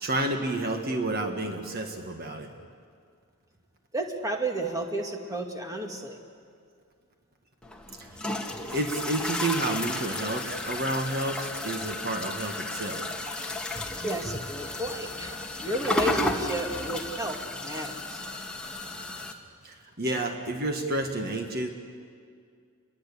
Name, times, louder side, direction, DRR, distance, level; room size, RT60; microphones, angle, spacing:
voice 1, 0.0-2.5 8.0-8.1 8.7-13.1 19.6-21.7, right 2 dB, 45° right, 4 dB, 1.7 m, -30 dB
voice 2, 3.9-6.2 14.0-15.3 15.6-18.2, right 1 dB, 15° right, 2 dB, 2.1 m, -32 dB
sound 1, 7.6-19.3, left 1 dB, 5° left, 1.7 m, -33 dB
29.0 x 22.0 x 8.5 m, 2.2 s
head